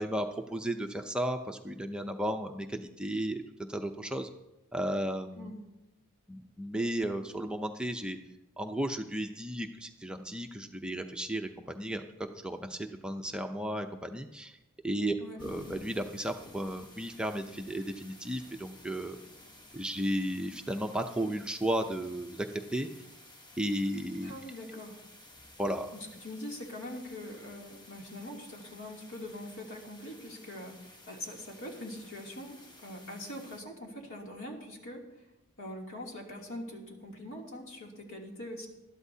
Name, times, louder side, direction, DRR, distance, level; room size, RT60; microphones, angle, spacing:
voice 1, 0.0-3.4 3.7-4.3 4.7-5.5 6.3-8.2 8.6-12.0 12.4-14.6 14.8-15.1 15.4-19.2 19.7-22.5 22.7-22.9 23.6-24.3 25.6-25.9, right 1 dB, 5° right, 3 dB, 0.5 m, -34 dB
sound 1, 15.4-33.6, left 1 dB, 20° left, 1.1 m, -53 dB
voice 2, 24.2-25.0 25.9-35.2 35.6-38.7, left 1 dB, 65° left, -1 dB, 2.8 m, -43 dB
20.5 x 12.5 x 2.8 m, 0.96 s
head